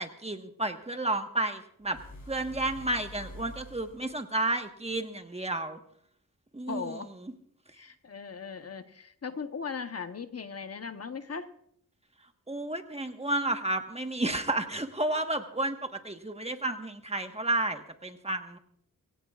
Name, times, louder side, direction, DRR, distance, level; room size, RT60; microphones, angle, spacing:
voice 1, 0.0-2.0 2.3-5.8 6.5-7.0 12.5-18.6, right 2 dB, 20° right, 6 dB, 1.3 m, -31 dB
sound 1, 1.8-4.2, left 1 dB, 60° left, 4.1 m, -47 dB
voice 2, 6.7-7.1 7.7-11.5, left 5 dB, 45° left, 8 dB, 1.0 m, -38 dB
22.5 x 17.0 x 2.4 m, 0.70 s
wide cardioid pair, 95°, 34 cm